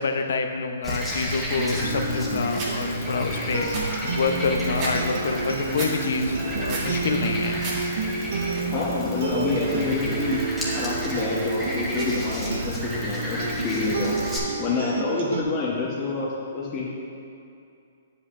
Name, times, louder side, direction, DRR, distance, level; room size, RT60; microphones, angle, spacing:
voice 1, 0.0-7.7, left 4 dB, 75° left, 6 dB, 0.6 m, -27 dB
Frog, 0.8-14.4, equal, 5° right, 1.5 m, -32 dB
sound 1, 1.6-15.4, right 3 dB, 70° right, 0.8 m, -30 dB
sound 2, 2.5-2.7 3.2-3.3 3.5-5.0 5.3-5.9 6.3-6.9 7.3-7.8 8.1-8.6, right 2 dB, 35° right, 1.8 m, -33 dB
voice 2, 8.7-10.4 10.7-14.2 14.6-16.9, left 3 dB, 30° left, -6 dB, 1.0 m, -27 dB
9.2 x 8.0 x 2.5 m, 2.5 s
hypercardioid pair, 145°, 0 cm